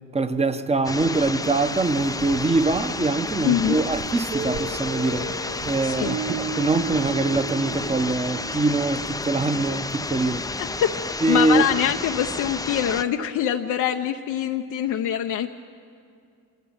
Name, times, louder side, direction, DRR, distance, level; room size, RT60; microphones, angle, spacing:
voice 1, 0.1-5.3 5.6-10.5 11.2-11.7, right 3 dB, 20° right, 10 dB, 1.1 m, -23 dB
sound 1, 0.8-13.0, left 3 dB, 10° left, 0.6 m, -31 dB
sound 2, 1.5-7.9, right 6 dB, 75° right, 1.0 m, -45 dB
voice 2, 3.4-3.8 5.8-6.2 10.6-10.9 11.3-15.5, left 10 dB, 80° left, 3 dB, 0.8 m, -24 dB
Guitar, 4.3-11.0, right 5 dB, 55° right, 1.5 m, -35 dB
26.0 x 15.0 x 8.8 m, 2.4 s
cardioid pair, 90°, 30 cm